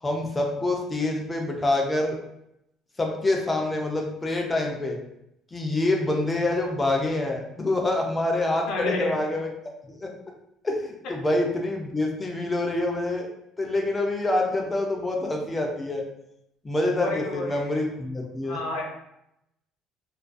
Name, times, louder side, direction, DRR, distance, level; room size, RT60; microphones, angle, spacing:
voice 1, 0.0-2.2 3.0-5.0 5.5-9.5 10.0-10.1 10.6-13.3 13.6-16.0 16.6-18.6, left 2 dB, 10° left, 1 dB, 0.3 m, -26 dB
voice 2, 8.7-9.2 17.0-17.7 18.5-18.9, left 2 dB, 65° left, -1 dB, 0.6 m, -30 dB
2.3 x 2.2 x 2.4 m, 0.80 s
cardioid pair, 175°, 0 cm